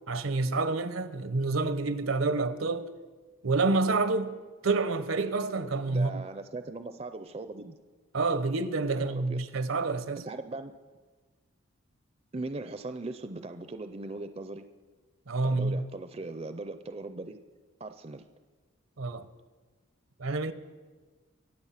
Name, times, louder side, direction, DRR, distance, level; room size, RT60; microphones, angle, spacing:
voice 1, 0.1-2.9 3.4-4.4 4.6-6.2 8.1-10.2 15.3-15.8 19.0-19.2 20.2-20.5, right 3 dB, 80° right, 0.8 m, -28 dB
voice 2, 5.9-7.8 9.0-9.4 10.3-10.7 12.3-14.6 15.4-17.4 17.8-18.3, right 2 dB, 30° right, 0.5 m, -39 dB
23.5 x 7.8 x 5.8 m
head